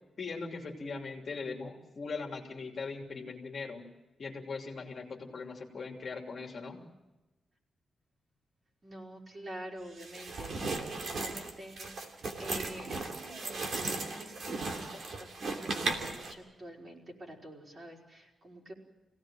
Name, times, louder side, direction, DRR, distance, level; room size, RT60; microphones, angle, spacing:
voice 1, 0.2-3.8 4.2-6.8, left 4 dB, 40° left, 0 dB, 2.9 m, -40 dB
voice 2, 8.8-18.7, right 1 dB, 30° right, -1 dB, 4.9 m, -48 dB
sound 1, 10.0-16.3, right 3 dB, 55° right, 3.0 m, -36 dB
26.5 x 17.5 x 9.0 m, 1.1 s
wide cardioid pair, 170°, 0 cm